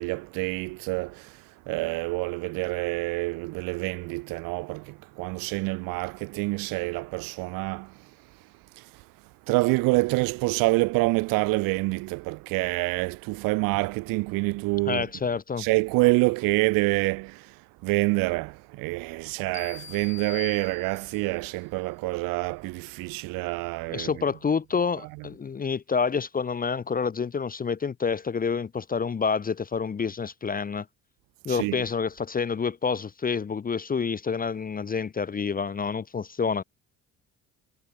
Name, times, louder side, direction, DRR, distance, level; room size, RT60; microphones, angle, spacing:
voice 1, 0.0-1.4 1.7-7.9 8.8-8.9 9.5-15.1 15.6-17.5 17.8-24.1 31.5-31.8, right 25 dB, 65° right, 0.5 m, -27 dB
voice 2, 14.9-15.7 23.9-30.9 31.4-36.6, left 5 dB, 25° left, 0.6 m, -28 dB
sound 1, 19.5-21.4, left 8 dB, 45° left, 2.8 m, -43 dB
hypercardioid pair, 55°, 38 cm